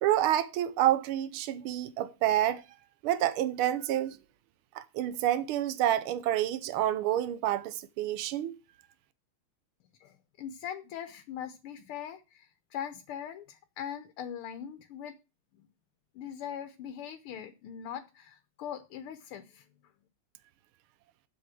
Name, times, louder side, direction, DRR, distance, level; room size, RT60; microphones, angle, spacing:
voice 1, 0.0-2.6 3.0-4.2 4.7-8.5, right 12 dB, 85° right, 1.6 m, -28 dB
voice 2, 10.0-15.1 15.5-15.7 16.1-19.6, left 9 dB, 90° left, 1.8 m, -41 dB
7.9 x 6.3 x 7.5 m
omnidirectional pair, 2.3 m